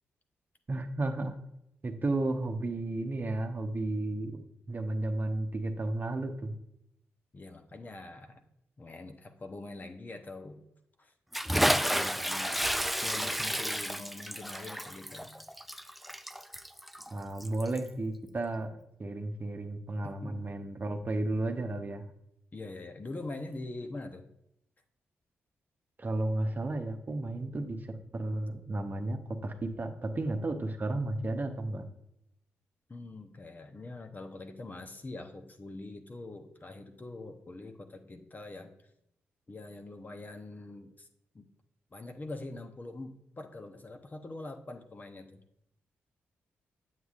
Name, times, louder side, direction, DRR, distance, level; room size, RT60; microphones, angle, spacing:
voice 1, 0.7-1.4 1.8-4.4 4.7-6.6 17.1-22.1 26.0-31.8, right 2 dB, 35° right, 5 dB, 0.9 m, -33 dB
voice 2, 7.3-8.4 8.8-10.6 11.0-11.1 11.7-15.3 20.2-20.4 22.5-24.3 32.9-38.7 39.5-41.1 41.3-41.5 41.9-45.4, left 2 dB, 35° left, 6 dB, 0.8 m, -44 dB
Bathtub (filling or washing) / Splash splatter, 11.3-17.9, equal, ahead, 0.3 m, -31 dB
7.9 x 7.4 x 2.5 m, 0.79 s
supercardioid pair, 50°, 5 cm